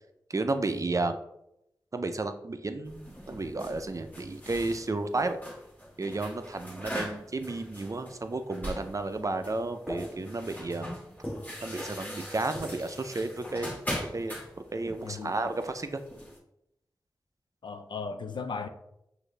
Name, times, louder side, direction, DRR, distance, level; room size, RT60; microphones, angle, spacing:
voice 1, 0.3-1.2 1.9-5.4 6.0-10.9 11.6-13.7 14.1-14.4 14.7-16.0, right 2 dB, 45° right, 0.5 m, -32 dB
sound 1, 2.8-16.4, equal, 20° left, 1.4 m, -42 dB
sound 2, 9.9-10.6 11.2-12.3 12.5-13.1 13.9-14.4, equal, ahead, 1.1 m, -40 dB
voice 2, 15.0-15.4 17.6-18.7, left 5 dB, 80° left, 0.4 m, -36 dB
6.1 x 2.6 x 3.2 m
cardioid pair, 40°, 8 cm